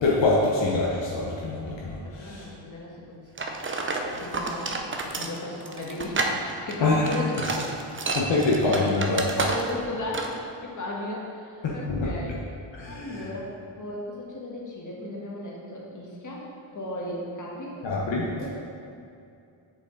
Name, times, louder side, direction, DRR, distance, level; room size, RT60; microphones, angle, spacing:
voice 1, 0.0-2.5 6.8-7.1 8.1-9.3 11.6-12.1 12.7-13.3 17.8-18.3, left 2 dB, 70° left, -4 dB, 1.0 m, -25 dB
voice 2, 2.0-7.6 9.4-12.4 12.8-17.8 18.4-18.5, left 1 dB, 40° left, -3 dB, 1.5 m, -36 dB
sound 1, 3.4-9.9 10.1-10.4, right 3 dB, 25° right, 0.6 m, -30 dB
7.1 x 4.9 x 3.9 m, 2.5 s
cardioid pair, 80°, 46 cm